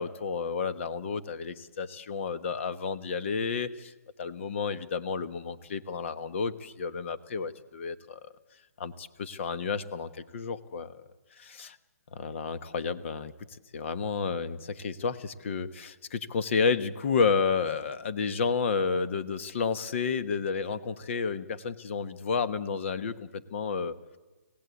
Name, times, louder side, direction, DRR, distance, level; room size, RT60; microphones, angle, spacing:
voice 1, 0.0-3.9 4.2-8.2 8.8-11.0 11.4-11.7 12.1-24.2, left 5 dB, 50° left, 13 dB, 1.3 m, -31 dB
25.5 x 17.0 x 8.4 m, 1.2 s
hypercardioid pair, 150°, 9 cm